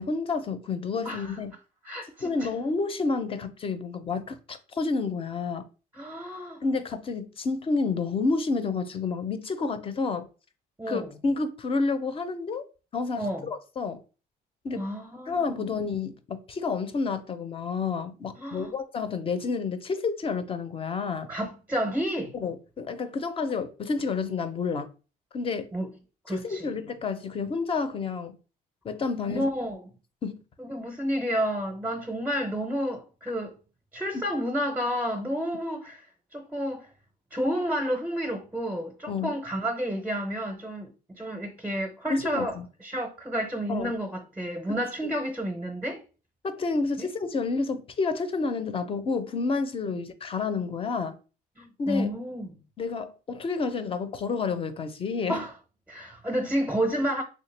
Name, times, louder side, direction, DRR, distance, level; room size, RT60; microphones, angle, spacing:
voice 1, 0.0-1.5 2.2-5.7 6.6-10.3 10.9-12.6 12.9-14.0 14.6-14.9 15.3-21.3 22.3-24.9 25.3-25.7 26.3-28.4 28.8-29.5 30.2-30.4 34.1-34.3 39.1-39.3 42.1-42.7 43.7-44.0 44.7-45.1 46.4-51.2 51.8-52.1 52.8-55.5, left 4 dB, 35° left, 0.5 m, -30 dB
voice 2, 1.0-1.4 1.8-2.5 5.9-6.6 10.8-11.1 13.2-13.5 14.7-15.6 18.4-18.7 21.3-22.3 25.7-25.9 26.3-26.7 29.3-29.8 30.6-33.6 33.9-36.1 36.3-36.9 37.3-42.5 42.8-46.0 47.0-47.1 51.6-52.6 55.3-55.5 55.9-57.2, equal, 10° right, 0.6 m, -30 dB
3.2 x 2.9 x 3.2 m
cardioid pair, 110°, 17 cm